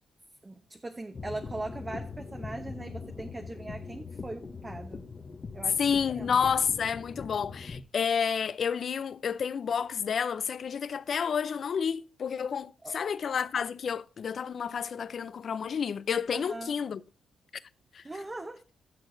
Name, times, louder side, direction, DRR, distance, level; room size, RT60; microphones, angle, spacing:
voice 1, 0.4-5.1 5.5-6.4 12.8-13.0 16.3-16.7 18.0-18.6, right 2 dB, 25° right, 0.9 m, -40 dB
sound 1, 1.1-7.8, left 4 dB, 40° left, 0.9 m, -41 dB
voice 2, 5.8-17.0 17.9-18.0, left 7 dB, 60° left, 0.5 m, -30 dB
15.0 x 6.4 x 2.6 m
cardioid pair, 75°, 0 cm